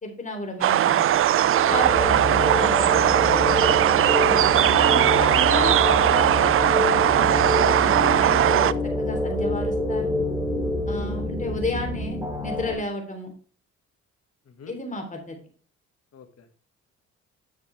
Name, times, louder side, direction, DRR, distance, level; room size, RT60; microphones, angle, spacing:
voice 1, 0.0-1.1 1.7-3.4 4.3-7.3 7.6-10.2 10.9-13.3 14.7-15.4, left 1 dB, 25° left, 3 dB, 3.3 m, -33 dB
sound 1, 0.6-8.7, right 12 dB, 45° right, 0.4 m, -19 dB
sound 2, 1.2-12.7, left 1 dB, 10° right, 4.6 m, -27 dB
voice 2, 16.1-16.5, left 6 dB, 55° left, 7 dB, 1.8 m, -48 dB
10.0 x 6.7 x 3.4 m, 0.42 s
cardioid pair, 90°, 30 cm